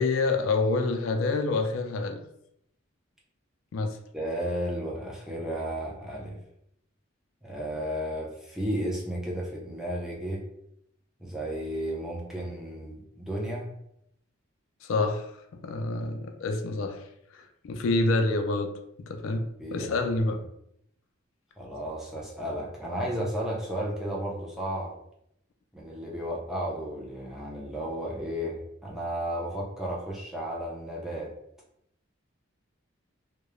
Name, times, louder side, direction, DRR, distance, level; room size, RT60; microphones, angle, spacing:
voice 1, 0.0-2.2 3.7-4.0 14.8-15.3 15.5-17.0 17.3-18.7 19.0-20.4, left 3 dB, 75° left, 5 dB, 0.3 m, -27 dB
voice 2, 4.1-6.4 7.4-10.4 11.2-13.7 19.6-20.1 21.6-24.9 25.7-31.3, equal, ahead, -4 dB, 0.4 m, -33 dB
2.3 x 2.0 x 2.9 m, 0.75 s
head